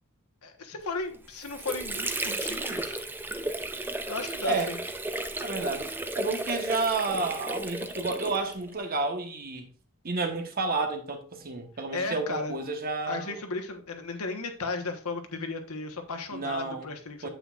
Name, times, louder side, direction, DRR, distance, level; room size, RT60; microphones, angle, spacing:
voice 1, 0.4-3.0 4.1-4.8 11.9-12.6 13.1-17.3, left 3 dB, 80° left, 1.3 m, -35 dB
Water / Sink (filling or washing), 1.1-8.8, right 2 dB, 10° right, 0.5 m, -34 dB
voice 2, 5.4-5.9 6.1-9.7 10.0-13.4 16.3-16.9 17.2-17.3, right 3 dB, 45° right, 1.2 m, -31 dB
8.8 x 7.7 x 2.5 m
head